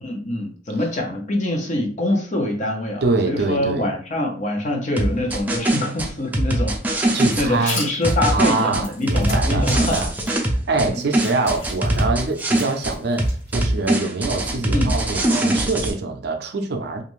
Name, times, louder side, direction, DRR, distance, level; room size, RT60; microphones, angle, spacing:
voice 1, 0.0-10.0 10.8-11.2 14.7-14.9, left 1 dB, 40° left, 0.7 m, -25 dB
voice 2, 3.0-3.9 7.1-7.8 8.3-10.1 10.5-17.0, right 3 dB, 60° right, 0.5 m, -24 dB
sound 1, 5.0-7.5 8.0-10.9 11.1-12.9 13.2-15.9, right 1 dB, 10° right, 0.5 m, -22 dB
sound 2, 7.1-10.3 10.8-13.9, left 1 dB, 80° left, 1.5 m, -37 dB
2.6 x 2.5 x 3.1 m
head